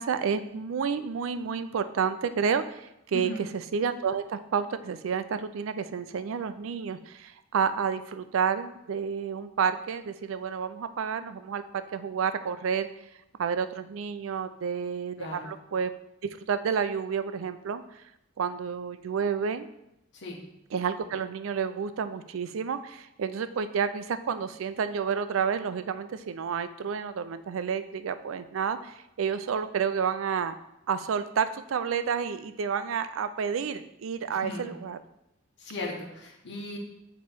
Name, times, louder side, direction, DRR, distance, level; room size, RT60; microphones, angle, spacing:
voice 1, 0.0-12.9 13.4-15.9 16.5-18.0 18.4-19.7 20.7-30.5 30.9-35.0, right 6 dB, 80° right, 11 dB, 0.4 m, -30 dB
voice 2, 3.1-3.5 15.2-15.5 20.1-20.4 34.3-34.7 35.6-36.8, left 2 dB, 60° left, -1 dB, 1.1 m, -37 dB
7.3 x 3.0 x 4.4 m, 0.85 s
head